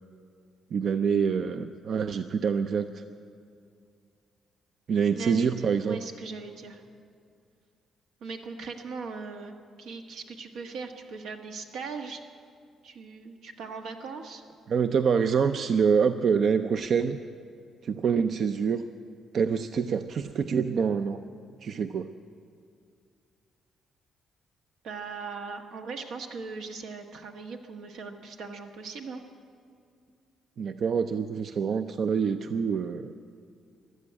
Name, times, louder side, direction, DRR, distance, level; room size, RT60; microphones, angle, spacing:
voice 1, 0.7-3.0 4.9-6.0 14.7-17.2 17.8-18.8 19.3-21.2 21.6-22.1 30.6-33.1, right 6 dB, 60° right, 9 dB, 0.5 m, -26 dB
voice 2, 5.1-6.8 8.2-12.2 12.8-14.4 24.8-29.2, right 4 dB, 80° right, 4 dB, 1.3 m, -39 dB
14.5 x 11.5 x 8.7 m, 2.3 s
cardioid pair, 90°, 0 cm